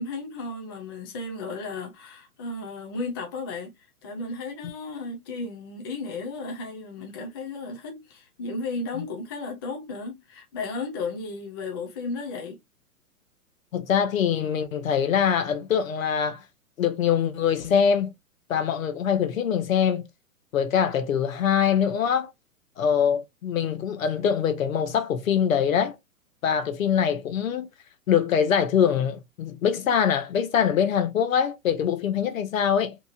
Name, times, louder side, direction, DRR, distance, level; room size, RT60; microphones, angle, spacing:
voice 1, 0.0-3.7 4.0-12.6, left 3 dB, 20° left, 0.3 m, -34 dB
voice 2, 13.7-16.4 16.8-18.1 18.5-20.1 20.5-22.3 22.8-26.0 26.4-27.7 28.1-33.0, left 8 dB, 65° left, 0.9 m, -23 dB
2.9 x 2.4 x 2.4 m
hypercardioid pair, 120°, 43 cm